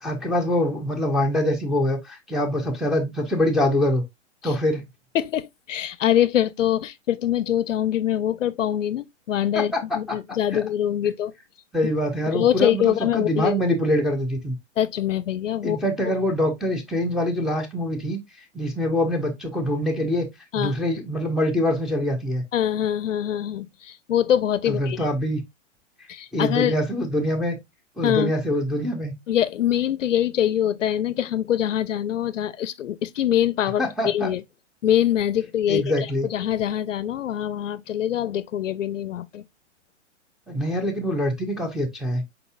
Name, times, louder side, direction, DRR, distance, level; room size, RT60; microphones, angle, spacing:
voice 1, 0.0-4.0 4.4-4.8 9.5-10.0 10.5-10.6 11.7-14.5 15.6-18.2 18.5-20.3 20.5-22.4 24.7-25.4 26.3-27.6 28.0-29.1 33.8-34.3 35.7-36.3 40.5-42.2, left 1 dB, ahead, 0.8 m, -24 dB
voice 2, 5.1-11.3 12.3-13.6 14.8-16.1 20.5-20.8 22.5-25.1 26.1-26.7 28.0-28.3 29.3-34.4 34.8-35.9 36.3-39.4, left 10 dB, 85° left, 0.5 m, -24 dB
4.6 x 4.0 x 2.3 m
hypercardioid pair, 110°, 36 cm